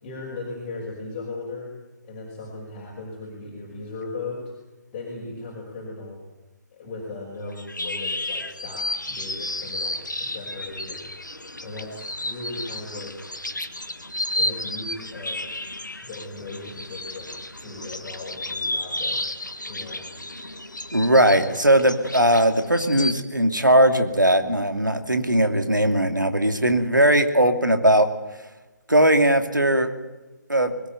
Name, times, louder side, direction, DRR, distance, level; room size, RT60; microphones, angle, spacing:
voice 1, 0.0-1.7 2.0-4.5 4.9-6.2 6.7-11.1 11.6-13.2 14.3-15.5 16.0-19.4 19.7-20.1, left 3 dB, 25° left, -3 dB, 5.7 m, -37 dB
sound 1, 7.5-23.2, left 1 dB, 80° left, 1.9 m, -32 dB
voice 2, 20.9-28.1 28.9-29.9 30.5-30.7, right 1 dB, 85° right, 7 dB, 2.6 m, -19 dB
21.0 x 18.5 x 9.4 m, 1.1 s
figure-of-eight pair, 145°, 10 cm